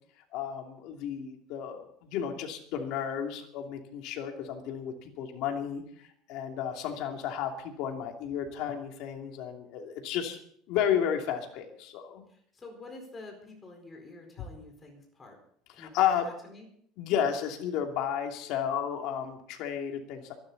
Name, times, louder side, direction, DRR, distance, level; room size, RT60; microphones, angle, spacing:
voice 1, 0.3-10.4 10.7-12.2 15.8-16.3 17.0-20.3, left 9 dB, 55° left, 3 dB, 2.8 m, -32 dB
voice 2, 12.3-15.4 15.7-16.7, left 2 dB, 15° left, 2 dB, 4.5 m, -48 dB
24.0 x 12.0 x 4.2 m, 0.64 s
cardioid pair, 170°, 0 cm